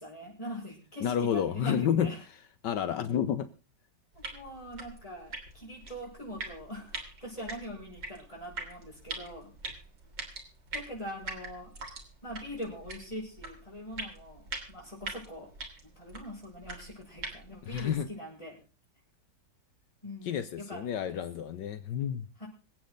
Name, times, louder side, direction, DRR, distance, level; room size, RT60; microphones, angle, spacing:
voice 1, 0.0-2.2 4.1-9.5 10.7-11.7 12.2-15.5 15.8-18.6 20.0-21.2 22.4-22.5, equal, 20° left, 6.4 m, -42 dB
voice 2, 1.0-2.1 2.6-3.5 17.6-18.1 20.2-22.3, left 9 dB, 75° left, 1.5 m, -30 dB
sound 1, 4.1-18.1, right 3 dB, 75° right, 3.9 m, -44 dB
25.5 x 8.6 x 3.9 m
omnidirectional pair, 2.0 m